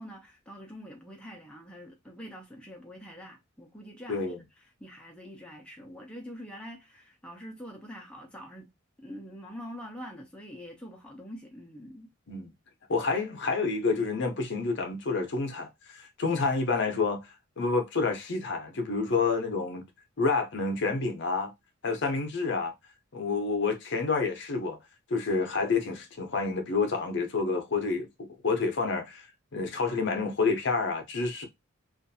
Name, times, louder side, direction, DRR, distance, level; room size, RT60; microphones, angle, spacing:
voice 1, 0.0-4.3 4.8-8.7 9.0-12.1, equal, 5° left, 0.4 m, -45 dB
voice 2, 4.1-4.4 12.3-12.5 12.9-17.2 17.6-19.9 20.2-21.5 21.8-22.7 23.1-24.8 25.1-29.3 29.5-31.5, left 4 dB, 60° left, 0.6 m, -28 dB
2.4 x 2.3 x 2.6 m
head